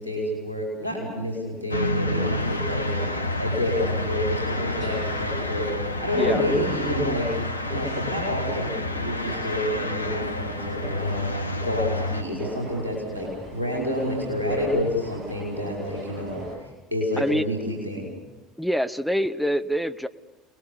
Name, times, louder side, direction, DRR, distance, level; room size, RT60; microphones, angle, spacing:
voice 1, 0.0-2.9 3.4-7.3 7.6-11.2 11.6-18.1, left 1 dB, 85° right, -1 dB, 5.1 m, -28 dB
sound 1, 1.7-12.2, left 1 dB, 85° left, 0.7 m, -29 dB
sound 2, 2.1-16.6, right 1 dB, 45° right, 7.6 m, -40 dB
voice 2, 6.1-6.8 17.2-17.4 18.6-20.1, equal, ahead, 10 dB, 1.0 m, -26 dB
29.0 x 20.5 x 7.1 m, 1.2 s
figure-of-eight pair, 65°, 0 cm